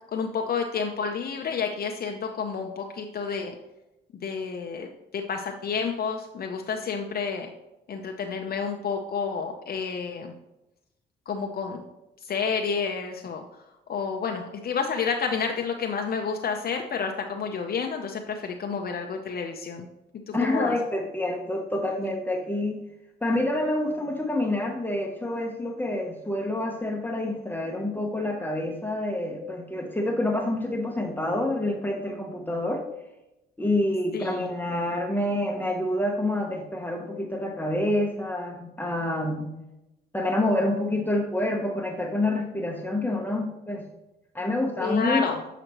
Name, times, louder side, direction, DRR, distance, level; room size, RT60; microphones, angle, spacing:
voice 1, 0.1-3.5 4.2-7.5 7.9-10.3 11.3-11.8 12.2-13.4 13.9-19.9 20.3-20.7 34.1-34.5 44.8-45.4, left 5 dB, 50° left, 3 dB, 0.6 m, -30 dB
voice 2, 20.3-22.8 23.2-32.9 33.6-39.6 40.1-43.9 44.3-45.3, left 1 dB, 10° left, 1 dB, 0.9 m, -27 dB
7.8 x 5.0 x 3.0 m, 0.93 s
cardioid pair, 90°, 20 cm